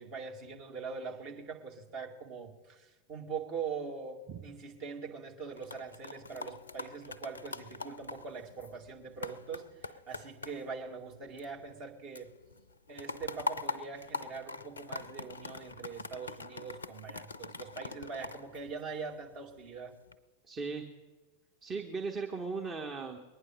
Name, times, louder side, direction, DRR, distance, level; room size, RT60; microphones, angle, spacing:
voice 1, 0.0-12.3 12.9-19.9, right 5 dB, 40° right, 1 dB, 2.2 m, -42 dB
sound 1, 5.4-11.9 12.2-19.3 19.8-20.2, left 4 dB, 75° left, 0.5 m, -43 dB
voice 2, 20.5-20.9 21.6-23.2, right 4 dB, 25° right, 2 dB, 1.2 m, -37 dB
21.5 x 9.6 x 6.4 m, 1.2 s
figure-of-eight pair, 90°, 0 cm